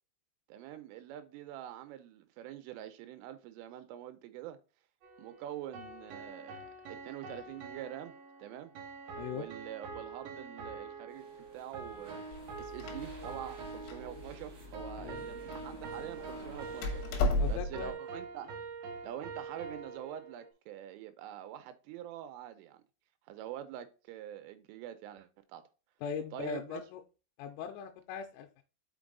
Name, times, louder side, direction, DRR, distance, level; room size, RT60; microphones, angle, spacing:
voice 1, 0.5-4.6 5.2-6.6 6.9-8.7 9.3-11.3 11.5-12.2 12.6-18.5 19.0-22.8 23.3-25.6 26.3-26.8, right 11 dB, 90° right, 3.2 m, -45 dB
sound 1, 5.0-20.5, right 4 dB, 65° right, 2.9 m, -45 dB
voice 2, 9.2-9.5 15.0-15.3 17.4-18.0 26.0-27.0 27.4-28.6, left 7 dB, 90° left, 3.3 m, -40 dB
sound 2, 11.1-17.6, right 3 dB, 40° right, 2.8 m, -53 dB
Door, 12.3-17.9, left 2 dB, 70° left, 2.9 m, -36 dB
6.2 x 5.3 x 3.8 m
omnidirectional pair, 5.7 m